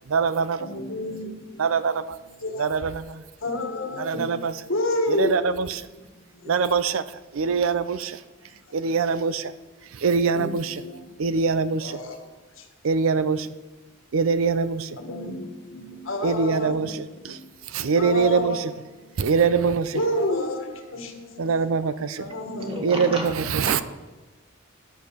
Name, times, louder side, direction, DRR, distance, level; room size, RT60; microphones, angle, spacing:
voice 1, 0.1-0.7 1.6-2.2 2.6-3.2 4.0-4.6 5.0-5.9 6.4-8.2 8.7-9.5 9.9-10.8 11.2-12.0 12.8-13.5 14.1-15.0 16.2-17.4 17.7-18.7 19.2-20.3 21.4-22.3 22.8-23.8, right 5 dB, 80° right, 15 dB, 0.5 m, -24 dB
voice 2, 0.6-1.3 2.4-2.7 3.4-4.3 4.7-5.3 10.3-10.5 10.8-10.9 11.8-12.1 15.0-15.5 15.7-16.7 17.9-18.6 19.9-20.6 20.9-21.1 22.2-22.7, left 2 dB, 80° left, 4 dB, 1.6 m, -28 dB
voice 3, 22.6-23.8, equal, 30° right, 1 dB, 1.8 m, -32 dB
11.0 x 6.8 x 6.1 m, 1.1 s
head